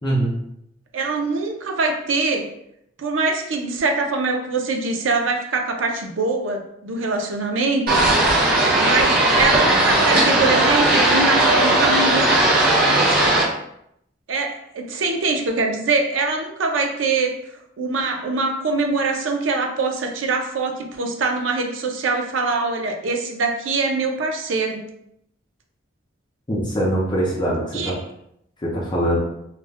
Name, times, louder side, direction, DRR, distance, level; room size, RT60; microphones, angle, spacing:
voice 1, 0.0-0.4 26.5-28.0 28.6-29.2, right 1 dB, 25° left, -5 dB, 0.5 m, -22 dB
voice 2, 0.9-2.5 3.0-8.0 8.8-12.3 14.3-17.4 17.8-24.8 27.7-28.0, right 3 dB, 90° right, 3 dB, 0.5 m, -23 dB
sound 1, 7.9-13.4, right 2 dB, 50° right, 0.7 m, -17 dB
2.4 x 2.1 x 3.4 m, 0.76 s
head